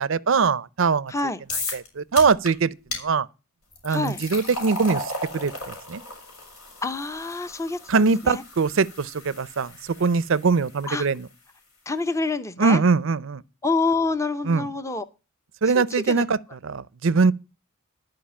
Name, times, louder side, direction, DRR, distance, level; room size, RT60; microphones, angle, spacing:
voice 1, 0.0-1.1 1.7-3.3 3.8-6.0 7.9-11.3 12.6-13.4 14.4-14.7 15.6-17.3, right 4 dB, 60° right, 0.5 m, -22 dB
voice 2, 1.1-1.4 3.9-4.2 6.8-8.4 10.9-11.1 11.9-12.8 13.6-15.0 16.1-16.2, left 3 dB, 15° left, 0.6 m, -27 dB
sound 1, 1.5-1.9 2.2-2.5 2.9-3.0 3.7-10.8, left 2 dB, 85° left, 5.4 m, -35 dB
12.5 x 5.0 x 8.5 m
head